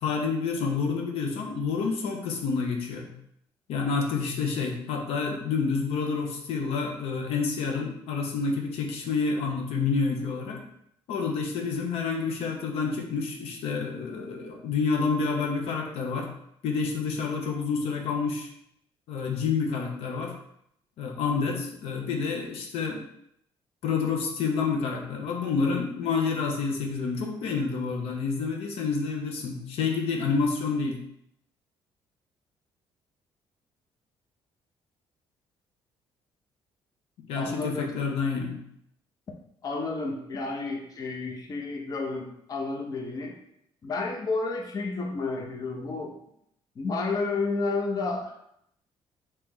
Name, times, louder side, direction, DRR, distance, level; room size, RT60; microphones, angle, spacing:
voice 1, 0.0-3.1 3.7-10.6 11.1-16.3 16.6-18.5 19.1-20.3 21.0-23.0 23.8-31.0 37.3-38.6, left 5 dB, 80° left, 2 dB, 0.6 m, -28 dB
voice 2, 37.3-37.9 39.6-43.3 43.8-46.1 46.8-48.3, left 3 dB, 40° left, 2 dB, 0.6 m, -31 dB
3.1 x 2.9 x 3.6 m, 0.73 s
cardioid pair, 115°, 10 cm